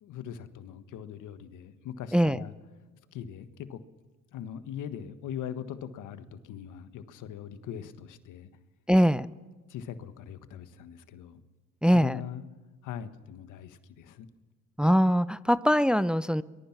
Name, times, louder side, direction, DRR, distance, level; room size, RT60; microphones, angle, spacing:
voice 1, 0.0-2.5 3.1-3.8 4.3-8.5 9.7-11.4 11.9-12.4 12.8-14.3, left 9 dB, 90° left, 11 dB, 1.5 m, -41 dB
voice 2, 2.1-2.4 8.9-9.3 11.8-12.2 14.8-16.4, equal, 5° right, 16 dB, 0.6 m, -22 dB
23.5 x 21.0 x 6.0 m, 1.3 s
cardioid pair, 90°, 30 cm